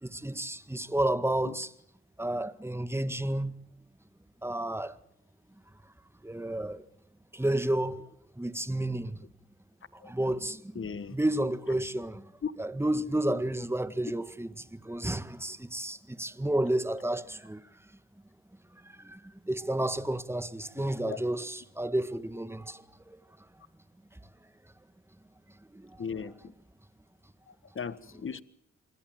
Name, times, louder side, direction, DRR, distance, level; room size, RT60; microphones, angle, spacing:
voice 1, 0.0-1.7 2.2-3.6 4.4-5.0 6.2-6.9 7.3-8.1 8.4-9.2 9.9-10.9 11.1-12.3 12.6-17.6 18.8-19.2 19.5-23.2 25.7-26.0, right 1 dB, 10° right, 1.8 m, -31 dB
voice 2, 10.7-11.2 12.4-12.5 20.8-21.2 26.0-26.5 27.5-28.4, left 6 dB, 40° left, 1.6 m, -37 dB
27.5 x 21.5 x 7.8 m
supercardioid pair, 55°, 31 cm